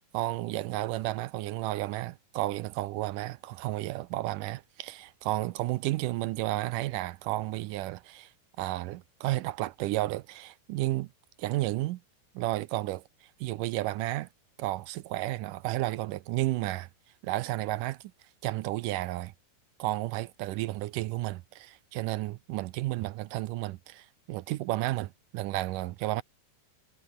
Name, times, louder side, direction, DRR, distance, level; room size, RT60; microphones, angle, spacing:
voice 1, 0.1-8.3 8.6-11.1 11.4-12.0 12.4-13.0 13.4-14.3 14.6-16.9 17.2-18.0 18.4-19.3 19.8-26.2, right 17 dB, 80° right, 2.1 m, -32 dB
omnidirectional pair, 4.1 m